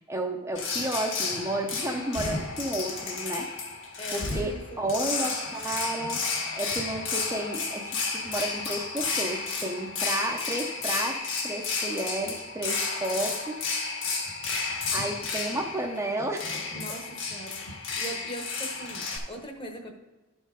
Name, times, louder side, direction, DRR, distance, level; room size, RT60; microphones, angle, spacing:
voice 1, 0.0-3.5 3.8-6.2 6.5-13.7 14.9-16.4, right 1 dB, 10° right, 0 dB, 0.6 m, -32 dB
sound 1, 0.5-19.2, left 4 dB, 55° left, 1.6 m, -32 dB
voice 2, 4.0-5.3 16.7-19.9, right 1 dB, 25° left, 4 dB, 1.0 m, -41 dB
11.5 x 4.5 x 4.9 m, 1.2 s
head